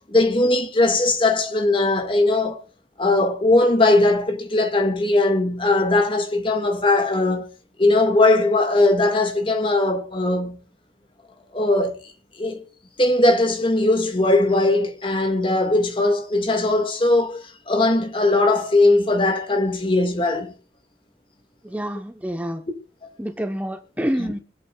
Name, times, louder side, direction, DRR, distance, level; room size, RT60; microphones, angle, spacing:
voice 1, 0.1-2.6 3.0-7.5 7.8-10.6 11.5-12.7 13.0-20.5 23.0-23.1 24.2-24.4, left 2 dB, 30° left, 1.8 m, -19 dB
voice 2, 21.6-22.6 23.2-24.4, equal, 10° right, 0.8 m, -27 dB
25.0 x 8.5 x 2.3 m
head